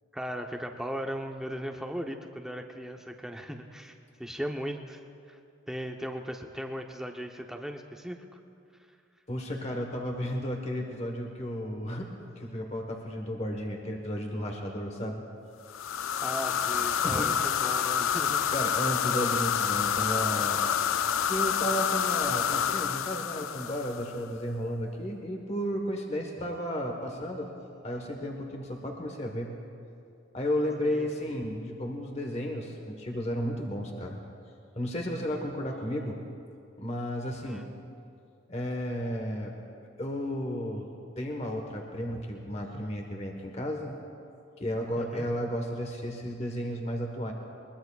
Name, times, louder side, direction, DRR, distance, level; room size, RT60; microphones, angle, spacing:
voice 1, 0.1-3.9 4.2-5.0 5.3-5.4 5.7-8.4 16.2-17.3 17.6-18.5 30.8-31.1 37.4-37.7 42.1-42.2 45.0-45.3, equal, ahead, 3 dB, 0.7 m, -37 dB
voice 2, 9.3-15.2 17.0-17.4 18.5-20.7 21.3-27.5 27.8-29.5 30.3-34.2 34.7-36.2 36.8-37.7 38.5-39.5 40.0-40.9 41.2-43.9 44.6-47.3, equal, 30° left, 2 dB, 1.2 m, -33 dB
sound 1, 15.7-24.2, left 8 dB, 80° left, 0.4 m, -28 dB
22.0 x 21.5 x 2.4 m, 2.5 s
head